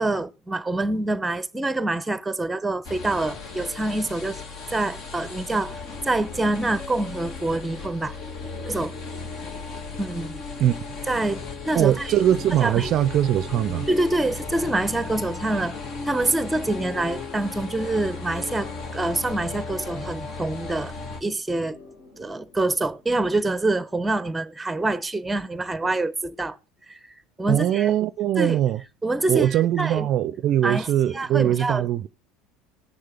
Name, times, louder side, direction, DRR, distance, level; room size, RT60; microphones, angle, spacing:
voice 1, 0.0-4.4 4.7-5.8 6.0-8.1 8.7-8.9 10.0-10.4 11.1-12.1 12.6-12.9 13.9-15.8 16.0-20.9 21.2-21.8 22.2-26.6 26.9-27.0 27.4-27.9 28.4-28.6 29.0-30.1 30.6-30.9 31.1-31.9, right 2 dB, 10° right, 0.8 m, -26 dB
sound 1, 2.8-21.2, left 4 dB, 55° left, 2.0 m, -36 dB
voice 2, 11.7-13.9 27.5-28.8 29.3-32.1, right 11 dB, 55° right, 0.4 m, -21 dB
sound 2, 21.5-24.4, left 3 dB, 75° left, 6.0 m, -53 dB
18.5 x 6.6 x 3.4 m
hypercardioid pair, 80°, 0 cm